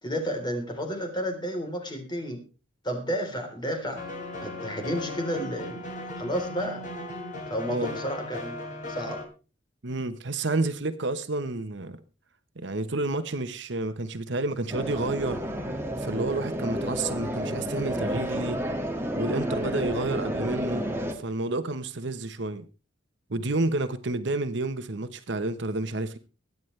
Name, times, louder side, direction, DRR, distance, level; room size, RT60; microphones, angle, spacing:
voice 1, 0.0-2.4 2.8-4.0 4.4-5.8 6.2-6.8 7.5-8.6 8.9-9.2, equal, 20° left, 3.7 m, -31 dB
sound 1, 3.9-9.2, left 2 dB, 40° left, 3.8 m, -37 dB
voice 2, 9.8-12.0 12.6-15.4 16.0-18.6 19.1-22.7 23.3-26.2, right 2 dB, 60° right, 1.0 m, -30 dB
sound 2, 14.7-21.1, equal, 10° right, 1.9 m, -31 dB
23.0 x 9.4 x 3.3 m
head